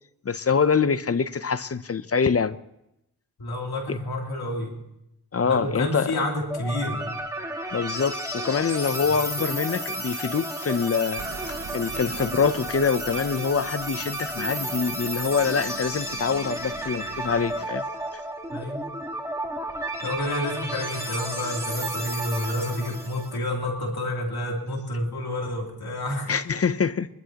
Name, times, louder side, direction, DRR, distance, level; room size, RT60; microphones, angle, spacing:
voice 1, 0.2-2.6 3.9-4.0 5.3-6.1 7.7-11.2 11.5-17.8 26.3-27.1, left 6 dB, 40° left, 14 dB, 0.7 m, -25 dB
voice 2, 3.4-4.8 5.4-7.1 9.0-9.2 18.5-18.9 20.0-26.3, left 1 dB, 85° left, 0 dB, 3.1 m, -29 dB
sound 1, 6.5-23.4, right 1 dB, 10° right, 1.7 m, -32 dB
sound 2, 11.2-17.7, right 6 dB, 45° right, 0.7 m, -43 dB
23.5 x 13.0 x 2.9 m, 0.84 s
cardioid pair, 60°, 37 cm